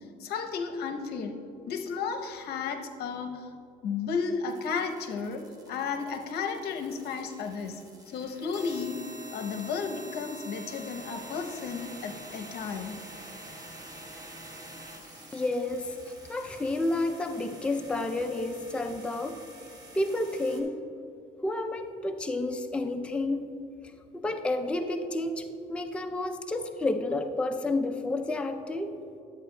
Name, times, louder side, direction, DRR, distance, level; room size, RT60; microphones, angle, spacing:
voice 1, 0.2-3.5 3.8-13.0, left 5 dB, 70° left, 6 dB, 0.8 m, -33 dB
sound 1, 4.5-20.6, right 1 dB, 20° right, 1.3 m, -47 dB
voice 2, 15.3-19.4 19.9-20.8 21.4-23.4 23.8-29.0, left 2 dB, 5° left, 5 dB, 0.4 m, -30 dB
11.5 x 8.3 x 2.2 m, 2.7 s
cardioid pair, 110°, 17 cm